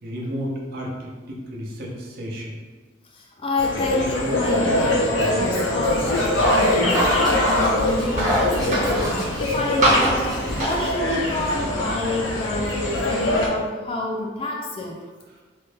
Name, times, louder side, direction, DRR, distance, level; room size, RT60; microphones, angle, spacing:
voice 1, 0.0-2.6, equal, 55° right, -3 dB, 0.6 m, -32 dB
voice 2, 3.1-15.0, left 2 dB, 30° left, -1 dB, 0.3 m, -28 dB
sound 1, 3.6-13.5, left 1 dB, 85° left, 0.6 m, -23 dB
Writing, 5.8-10.8, equal, 20° right, 0.8 m, -34 dB
sound 2, 6.3-7.7 8.2-9.2 9.8-10.3 10.6-10.7 11.4-11.5 12.6-12.7, right 1 dB, 40° right, 1.0 m, -22 dB
3.2 x 2.2 x 3.2 m, 1.4 s
head